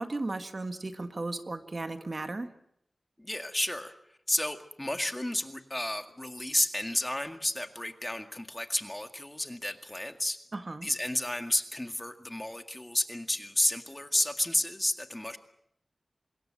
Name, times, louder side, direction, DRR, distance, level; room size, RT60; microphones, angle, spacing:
voice 1, 0.0-2.5 10.5-10.9, right 2 dB, 45° right, 8 dB, 1.6 m, -35 dB
voice 2, 3.2-10.4 10.8-15.4, left 1 dB, 15° left, 7 dB, 2.0 m, -31 dB
26.0 x 21.0 x 7.5 m, 0.74 s
wide cardioid pair, 70°, 0 cm